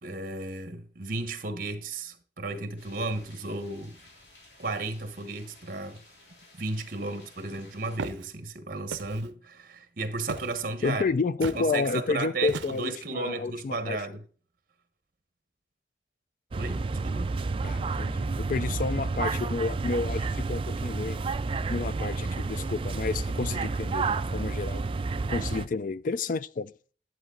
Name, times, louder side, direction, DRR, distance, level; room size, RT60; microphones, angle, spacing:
voice 1, 0.0-4.0 4.6-6.0 6.5-11.0 11.5-14.2 16.6-17.3 22.2-22.3 23.5-23.7, right 3 dB, 50° right, 1.2 m, -34 dB
sound 1, 2.8-8.0, left 2 dB, 75° left, 3.2 m, -55 dB
Walk footsteps, 8.0-8.3 8.9-9.3 10.3-10.6 11.4-11.7 12.5-13.0, right 4 dB, 85° right, 0.5 m, -36 dB
voice 2, 10.8-14.0 17.6-21.2 21.7-24.9 25.3-26.7, left 4 dB, 45° left, 0.3 m, -30 dB
sound 2, 16.5-25.7, right 3 dB, 30° right, 0.3 m, -30 dB
11.0 x 8.0 x 3.8 m
head